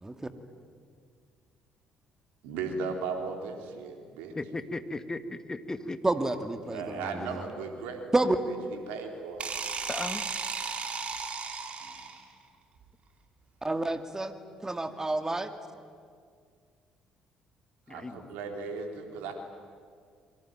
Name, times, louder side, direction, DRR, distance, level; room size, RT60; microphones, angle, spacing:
voice 1, 2.4-4.3 6.7-8.2 8.5-9.5 11.8-12.0 17.9-19.3, right 4 dB, 70° right, 4 dB, 3.8 m, -37 dB
voice 2, 4.4-6.0 9.9-10.2 17.9-18.3, left 2 dB, 20° left, 10 dB, 1.9 m, -36 dB
voice 3, 6.0-7.4 8.1-8.4 13.6-14.3 14.6-15.5, right 2 dB, 20° right, 8 dB, 2.3 m, -29 dB
sound 1, 9.4-12.3, right 5 dB, 50° right, 3.5 m, -35 dB
27.5 x 23.5 x 9.2 m, 2.1 s
hypercardioid pair, 50°, 3 cm